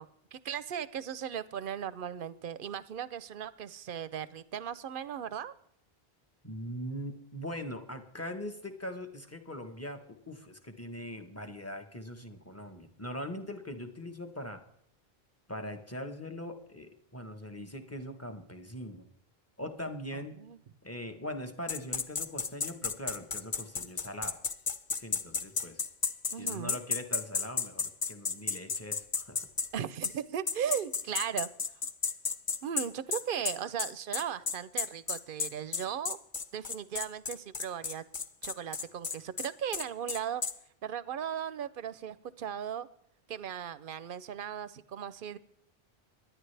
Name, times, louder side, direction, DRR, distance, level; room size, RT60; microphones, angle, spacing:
voice 1, 0.0-5.5 20.1-20.6 26.3-26.8 29.7-31.5 32.6-36.2 36.5-38.0 38.4-40.4 40.8-42.9 43.3-45.4, right 9 dB, 60° right, 16 dB, 0.8 m, -37 dB
voice 2, 6.4-14.6 15.5-19.1 19.6-20.4 20.8-24.4 25.0-25.8 26.4-29.5, left 1 dB, 15° left, 5 dB, 1.1 m, -41 dB
sound 1, 21.7-29.7 30.0-30.2 30.5-40.5, left 5 dB, 40° left, 0.3 m, -33 dB
23.0 x 10.5 x 3.3 m, 0.74 s
omnidirectional pair, 1.0 m